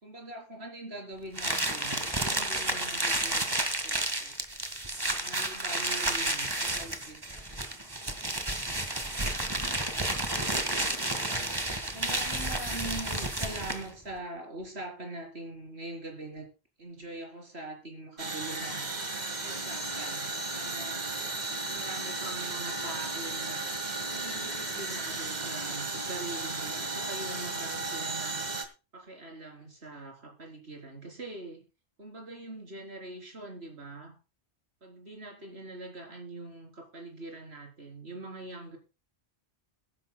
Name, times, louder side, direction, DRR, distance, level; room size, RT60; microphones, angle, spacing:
voice 1, 0.0-3.5 3.8-4.4 5.1-7.7 11.9-16.5 16.8-18.9 19.4-21.1 21.7-23.7 24.1-28.6 28.9-31.6 32.0-34.2 34.8-38.8, right 2 dB, 70° right, 4.1 m, -43 dB
sound 1, 1.3-13.9, right 1 dB, 20° right, 1.7 m, -31 dB
sound 2, 18.2-28.6, right 2 dB, 40° right, 2.0 m, -35 dB
21.5 x 10.5 x 2.2 m
omnidirectional pair, 1.1 m